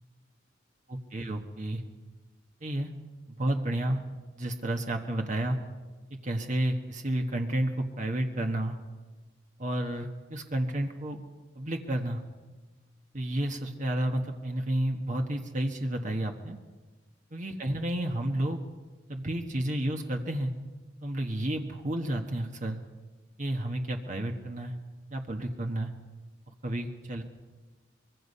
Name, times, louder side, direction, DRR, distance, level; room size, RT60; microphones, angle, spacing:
voice 1, 0.9-1.8 2.6-2.9 3.3-4.0 4.4-5.6 6.2-8.8 9.6-11.2 11.5-12.2 13.1-16.6 17.3-18.6 19.1-20.5 21.0-22.8 23.4-24.7 25.1-25.9 26.5-27.2, right 1 dB, 45° right, 3 dB, 1.4 m, -31 dB
24.0 x 22.0 x 5.5 m, 1.3 s
head